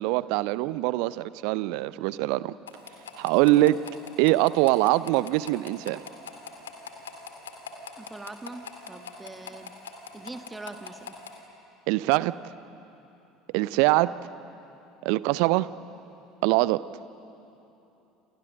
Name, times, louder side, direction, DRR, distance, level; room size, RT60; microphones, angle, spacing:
voice 1, 0.0-2.5 3.2-3.8 4.2-6.0 11.9-12.4 13.5-14.3 15.0-15.7 16.4-16.8, right 18 dB, 60° right, 18 dB, 0.6 m, -23 dB
sound 1, 2.7-11.4, left 5 dB, 75° left, 2.2 m, -44 dB
voice 2, 8.0-9.7 10.1-11.2, right 2 dB, 15° right, 8 dB, 1.6 m, -42 dB
28.5 x 28.0 x 6.5 m, 3.0 s
figure-of-eight pair, 65°, 0 cm